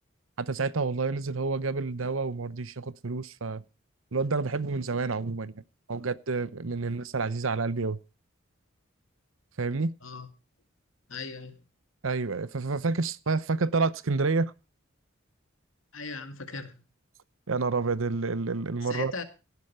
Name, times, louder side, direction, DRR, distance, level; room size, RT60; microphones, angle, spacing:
voice 1, 0.4-3.6 4.1-5.5 5.9-8.0 9.6-9.9 12.0-14.5 17.5-19.1, right 4 dB, 80° right, 0.9 m, -29 dB
voice 2, 11.1-11.6 15.9-16.8 18.8-19.2, left 4 dB, 80° left, 2.2 m, -38 dB
17.5 x 8.2 x 5.5 m
head